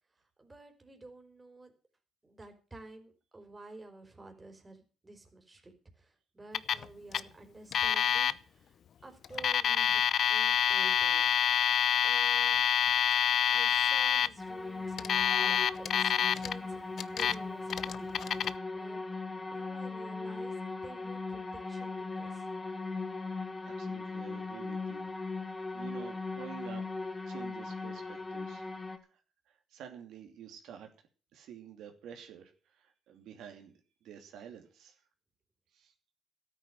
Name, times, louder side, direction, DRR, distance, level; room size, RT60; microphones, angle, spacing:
voice 1, 0.2-1.7 2.2-11.3 12.0-12.6 13.5-19.0 19.5-20.5 20.8-22.5, right 2 dB, 20° right, 5 dB, 4.2 m, -51 dB
Alarm, 6.5-6.9 7.1-7.2 7.7-8.3 9.2-14.3 15.0-16.5 17.0-17.4 17.7-18.5, left 9 dB, 60° left, 0.7 m, -27 dB
sound 1, 14.4-29.0, left 3 dB, 20° left, 2.7 m, -39 dB
voice 2, 23.6-25.4 25.7-26.9 27.2-28.6 29.1-29.2 29.5-30.9 31.3-33.7 34.0-34.9 35.7-35.9, right 9 dB, 85° right, 4 dB, 2.8 m, -49 dB
13.0 x 9.1 x 7.7 m, 0.37 s
cardioid pair, 90°, 0 cm